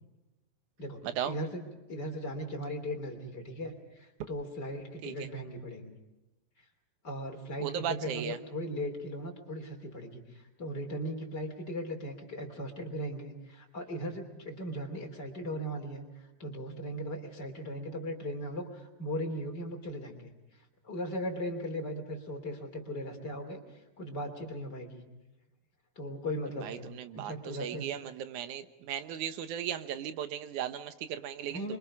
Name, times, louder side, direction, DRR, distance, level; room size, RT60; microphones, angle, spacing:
voice 1, 0.8-5.9 7.0-25.0 26.0-27.9 31.5-31.8, equal, 35° left, 4 dB, 3.4 m, -38 dB
voice 2, 7.6-8.4 26.6-27.3 27.6-31.8, right 9 dB, 90° right, 10 dB, 2.6 m, -36 dB
28.0 x 24.0 x 4.8 m, 1.1 s
omnidirectional pair, 3.4 m